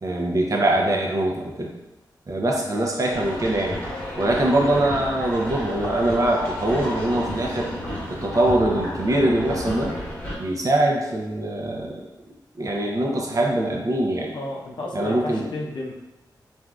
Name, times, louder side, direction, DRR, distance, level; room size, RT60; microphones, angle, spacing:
voice 1, 0.0-1.7 2.3-3.8 4.2-7.7 8.1-9.9 10.4-12.1 12.6-14.3 14.9-15.5, right 1 dB, 45° right, -1 dB, 0.6 m, -23 dB
sound 1, 3.1-10.3, left 1 dB, 20° left, 1.2 m, -31 dB
voice 2, 14.3-15.9, left 2 dB, 85° left, -2 dB, 0.5 m, -32 dB
3.3 x 2.5 x 2.3 m, 1.0 s
wide cardioid pair, 100°, 8 cm